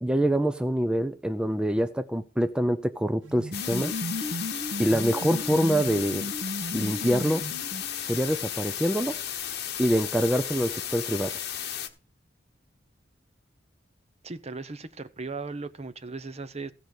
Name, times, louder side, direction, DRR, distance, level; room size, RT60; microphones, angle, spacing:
voice 1, 0.0-3.9 4.8-6.3 6.7-7.5 8.0-9.2 9.8-11.4, equal, 5° right, 0.5 m, -25 dB
sound 1, 3.2-8.1, left 1 dB, 80° right, 2.0 m, -35 dB
sound 2, 3.5-11.9, left 10 dB, 60° left, 1.2 m, -34 dB
voice 2, 14.2-16.7, right 3 dB, 35° right, 0.8 m, -37 dB
15.5 x 5.3 x 6.4 m
head